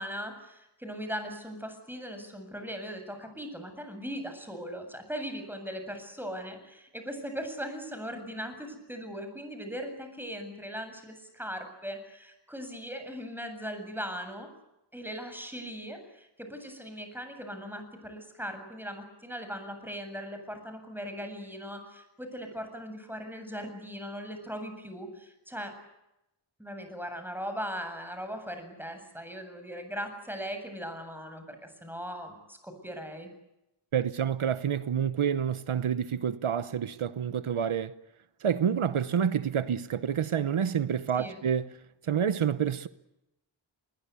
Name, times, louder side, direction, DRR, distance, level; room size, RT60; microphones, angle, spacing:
voice 1, 0.0-14.5 14.9-25.7 26.6-33.3 41.2-41.4, equal, 5° right, 7.7 m, -39 dB
voice 2, 33.9-37.9 38.4-41.7 42.0-42.9, right 8 dB, 80° right, 1.0 m, -28 dB
26.5 x 21.5 x 8.3 m
wide cardioid pair, 60°, 49 cm